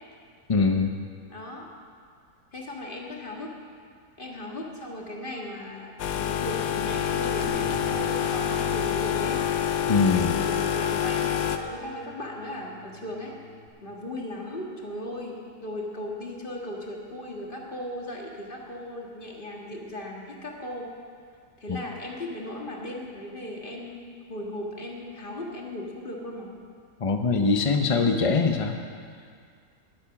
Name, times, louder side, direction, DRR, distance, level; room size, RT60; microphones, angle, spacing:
voice 1, 0.5-0.9 9.9-10.4 21.7-21.8 27.0-28.8, left 4 dB, 50° left, 5 dB, 0.4 m, -22 dB
voice 2, 1.3-1.7 2.5-3.5 4.2-9.4 10.1-13.3 13.8-20.9 21.6-26.5, left 1 dB, 30° left, -1 dB, 1.9 m, -37 dB
sound 1, 6.0-11.6, left 9 dB, 80° left, 1.3 m, -27 dB
Bass guitar, 7.4-13.7, right 3 dB, 50° right, 2.2 m, -45 dB
19.5 x 8.6 x 5.9 m, 2.2 s
omnidirectional pair, 1.7 m